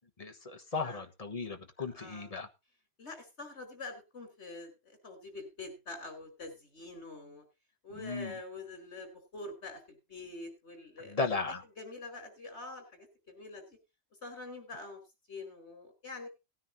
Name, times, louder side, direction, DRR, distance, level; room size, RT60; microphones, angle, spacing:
voice 1, 0.2-2.5 7.9-8.3 11.1-11.6, left 4 dB, 35° left, 6 dB, 1.3 m, -36 dB
voice 2, 1.8-2.3 3.0-7.4 7.8-11.2 11.8-13.7 14.2-15.0 15.3-16.3, left 3 dB, 75° left, 7 dB, 4.6 m, -45 dB
18.5 x 9.9 x 2.7 m, 0.26 s
omnidirectional pair, 1.2 m